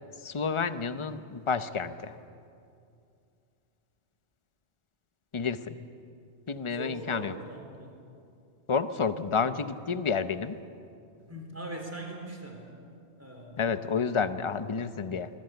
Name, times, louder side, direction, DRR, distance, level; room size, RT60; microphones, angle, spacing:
voice 1, 0.2-2.1 5.3-5.7 6.5-7.3 8.7-10.6 13.6-15.3, left 5 dB, 30° left, 11 dB, 0.7 m, -30 dB
voice 2, 6.7-7.9 11.3-12.6 13.2-13.6, right 1 dB, 10° right, 2 dB, 3.9 m, -40 dB
24.5 x 21.0 x 8.1 m, 2.5 s
omnidirectional pair, 1.2 m